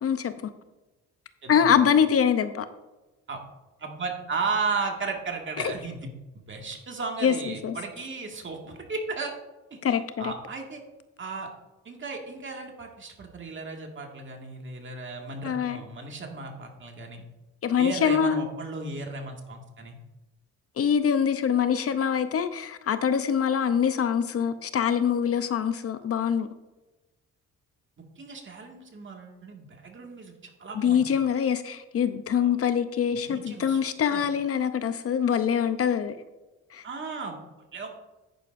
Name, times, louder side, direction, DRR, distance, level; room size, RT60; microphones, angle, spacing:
voice 1, 0.0-0.3 1.5-2.7 7.2-7.8 9.8-10.3 15.4-15.8 17.6-18.4 20.8-26.5 30.7-36.1 36.7-36.8, left 8 dB, 50° left, 11 dB, 0.7 m, -24 dB
voice 2, 3.8-9.3 9.7-10.8 11.2-11.5 11.9-17.3 17.8-20.0 28.2-30.3 30.6-31.1 32.4-32.5 33.2-33.8 34.1-34.2 36.8-37.4 37.7-37.9, right 4 dB, 40° right, 2 dB, 1.9 m, -35 dB
10.0 x 9.7 x 2.6 m, 1.1 s
cardioid pair, 90°, 30 cm